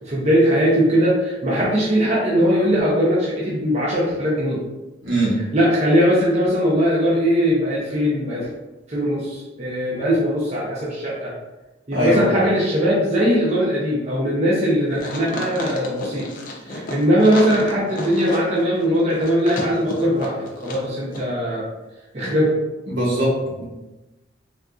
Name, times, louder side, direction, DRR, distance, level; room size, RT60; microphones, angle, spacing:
voice 1, 0.0-4.6 5.5-8.5 8.9-11.3 11.9-16.3 16.7-21.6 22.1-22.5, equal, 35° right, -6 dB, 0.6 m, -20 dB
voice 2, 5.0-5.3 11.9-12.2 22.9-23.6, right 1 dB, 85° right, -6 dB, 1.2 m, -21 dB
sound 1, 15.0-20.9 21.1-21.2, left 1 dB, 45° left, 0.5 m, -32 dB
3.6 x 2.6 x 2.3 m, 1.1 s
head